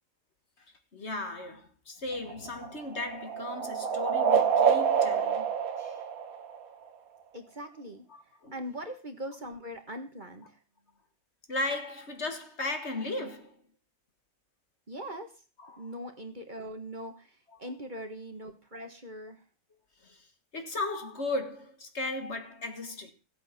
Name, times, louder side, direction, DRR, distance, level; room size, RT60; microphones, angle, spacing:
voice 1, 0.9-6.0 8.1-8.5 11.5-13.6 15.6-15.9 20.0-20.3 20.5-23.1, left 2 dB, 50° left, 1.8 m, -36 dB
sound 1, 2.1-6.9, right 7 dB, 70° right, 1.6 m, -27 dB
voice 2, 7.3-10.6 14.9-15.4 15.8-19.4, equal, 35° right, 1.6 m, -41 dB
16.0 x 8.3 x 5.9 m
omnidirectional pair, 1.5 m